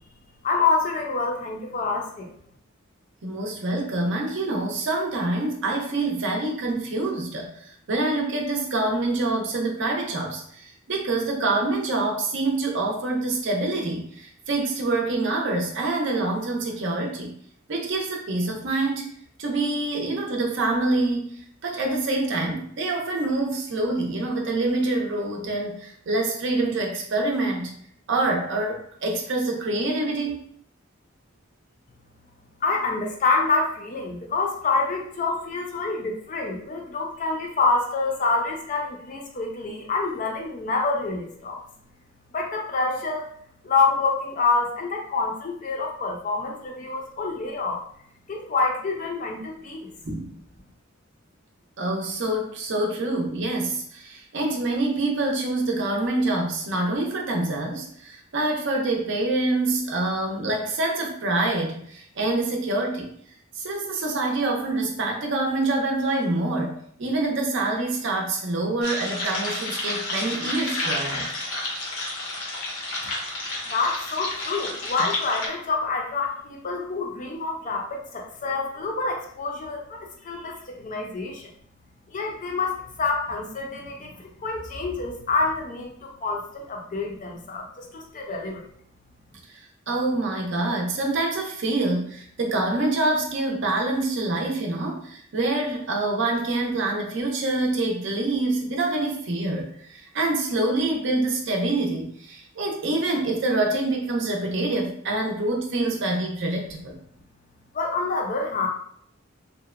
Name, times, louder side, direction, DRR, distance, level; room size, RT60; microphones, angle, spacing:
voice 1, 0.4-2.3 32.6-41.6 42.3-43.3 43.6-47.8 48.3-49.9 73.7-81.5 82.1-88.6 107.7-108.7, left 4 dB, 40° left, 1 dB, 0.4 m, -27 dB
voice 2, 3.2-17.3 17.7-19.1 19.4-21.4 21.6-27.7 28.1-30.4 50.1-50.3 51.8-63.1 63.6-71.3 89.9-107.0, right 2 dB, 60° right, 1 dB, 0.5 m, -26 dB
sound 1, 68.8-75.5, left 2 dB, 75° left, 0.7 m, -31 dB
2.8 x 2.1 x 2.3 m, 0.64 s
head